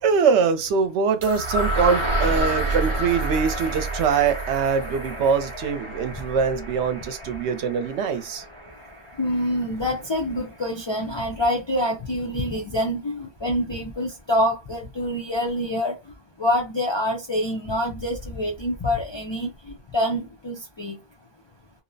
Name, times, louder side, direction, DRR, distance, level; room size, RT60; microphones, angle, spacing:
voice 1, 0.0-8.4, right 6 dB, 85° right, 0.9 m, -23 dB
sound 1, 1.2-9.1, right 1 dB, 35° right, 0.7 m, -29 dB
voice 2, 9.2-15.9 16.4-19.5 19.9-21.0, left 1 dB, 45° left, 0.3 m, -26 dB
2.6 x 2.0 x 2.6 m
omnidirectional pair, 1.1 m